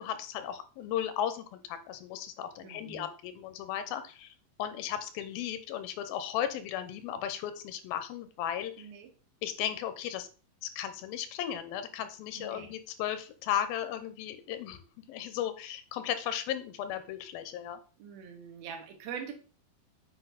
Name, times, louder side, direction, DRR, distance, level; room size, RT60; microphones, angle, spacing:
voice 1, 0.0-8.9 9.4-10.3 10.6-17.8, left 10 dB, 90° left, 11 dB, 2.7 m, -35 dB
voice 2, 2.6-3.1 8.8-9.1 12.3-12.7 18.0-19.3, right 7 dB, 80° right, 5 dB, 3.3 m, -43 dB
8.1 x 5.8 x 4.0 m, 0.37 s
omnidirectional pair, 4.3 m